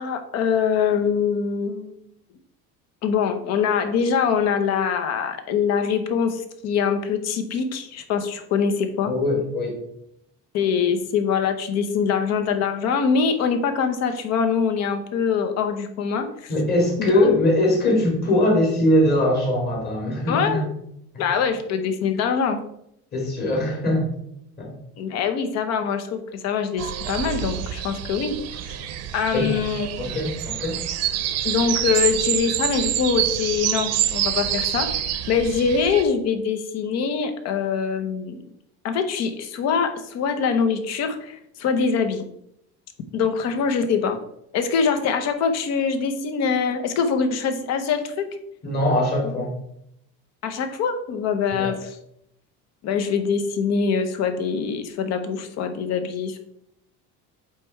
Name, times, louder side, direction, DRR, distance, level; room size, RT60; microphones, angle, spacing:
voice 1, 0.0-2.0 3.0-9.1 10.5-16.5 17.0-17.3 20.3-20.6 21.2-22.6 25.0-28.3 28.6-28.8 29.1-29.9 31.4-38.5 38.8-42.2 43.1-44.2 44.5-48.4 50.4-52.0 52.8-56.4, left 6 dB, 55° left, 7 dB, 1.0 m, -24 dB
voice 2, 9.1-9.9 16.5-20.7 21.1-21.2 23.1-24.1 24.6-24.7 29.3-29.5 30.0-30.8 48.6-49.5 51.5-51.7, left 1 dB, 30° left, -1 dB, 2.3 m, -21 dB
sound 1, 26.8-36.0, right 11 dB, 55° right, 0.7 m, -27 dB
8.3 x 3.2 x 4.5 m, 0.75 s
cardioid pair, 155°, 31 cm